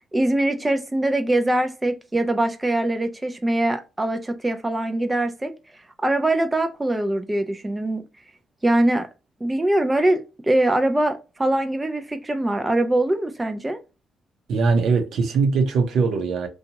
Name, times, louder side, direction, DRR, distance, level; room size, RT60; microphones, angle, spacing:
voice 1, 0.1-5.5 6.0-8.0 8.6-9.1 9.4-13.8, right 1 dB, 15° right, 0.4 m, -22 dB
voice 2, 14.5-16.5, right 4 dB, 70° right, 0.7 m, -21 dB
2.7 x 2.3 x 2.8 m
cardioid pair, 90°, 0 cm